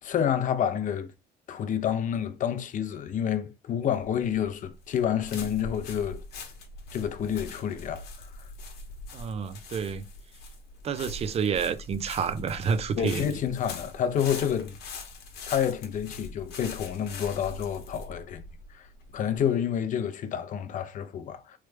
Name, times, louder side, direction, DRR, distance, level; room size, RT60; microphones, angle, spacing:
voice 1, 0.0-1.1 1.5-6.2 6.9-8.5 13.0-14.8 15.5-18.4 18.7-18.9 19.1-21.6, left 9 dB, 50° left, 0.5 m, -29 dB
sound 1, 3.9-19.4, left 3 dB, 75° left, 1.0 m, -42 dB
voice 2, 9.1-10.0 10.8-13.2, right 6 dB, 40° right, 0.4 m, -29 dB
3.2 x 2.2 x 3.3 m
cardioid pair, 110°, 17 cm